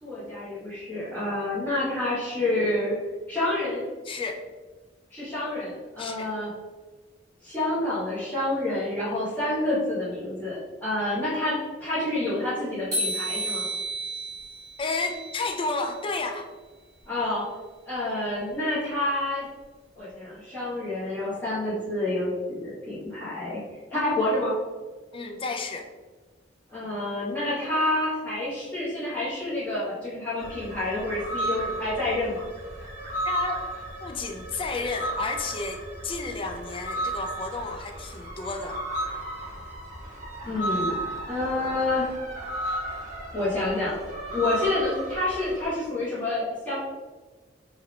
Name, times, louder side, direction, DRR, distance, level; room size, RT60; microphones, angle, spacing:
voice 1, 0.0-2.9 3.3-3.8 5.1-6.5 7.4-13.6 17.1-17.4 17.8-19.5 19.9-23.6 23.9-24.5 26.7-32.4 40.4-41.0 41.3-42.1 43.3-44.0 44.3-46.8, left 2 dB, 10° left, -13 dB, 1.1 m, -28 dB
voice 2, 4.1-4.4 6.0-6.3 14.8-16.5 25.1-25.9 33.2-33.7 34.0-38.8, left 3 dB, 30° left, 4 dB, 0.4 m, -31 dB
sound 1, 12.9-16.0, right 1 dB, 20° right, 1.4 m, -32 dB
sound 2, 30.4-45.7, right 1 dB, 40° right, 0.9 m, -34 dB
3.2 x 2.3 x 3.6 m, 1.3 s
head